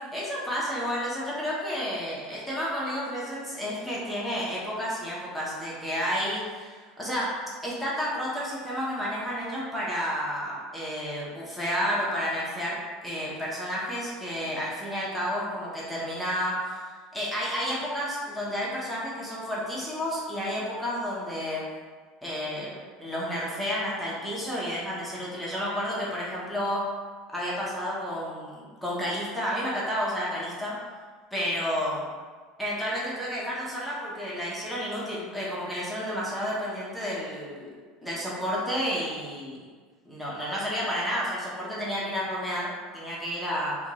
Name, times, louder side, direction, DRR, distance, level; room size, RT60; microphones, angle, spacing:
voice 1, 0.1-7.3 7.6-12.8 13.0-21.6 22.2-26.8 27.3-30.7 31.3-32.0 32.6-37.7 38.0-39.6 40.1-43.8, equal, ahead, -7 dB, 0.7 m, -31 dB
4.4 x 2.2 x 2.8 m, 1.5 s
supercardioid pair, 155°, 0 cm